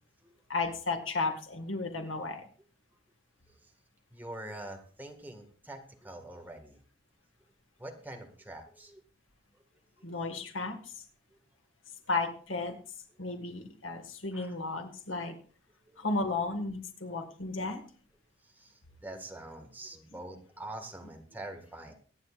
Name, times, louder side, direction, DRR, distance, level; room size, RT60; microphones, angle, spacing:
voice 1, 0.5-2.5 10.0-10.9 12.1-12.8 13.2-15.4 16.0-17.8, left 3 dB, 90° left, 5 dB, 1.9 m, -33 dB
voice 2, 4.1-6.8 7.8-9.0 9.5-9.6 14.3-14.6 15.9-16.0 17.2-17.3 18.4-21.9, right 1 dB, 10° right, 2 dB, 1.8 m, -45 dB
23.5 x 9.5 x 2.5 m, 0.42 s
head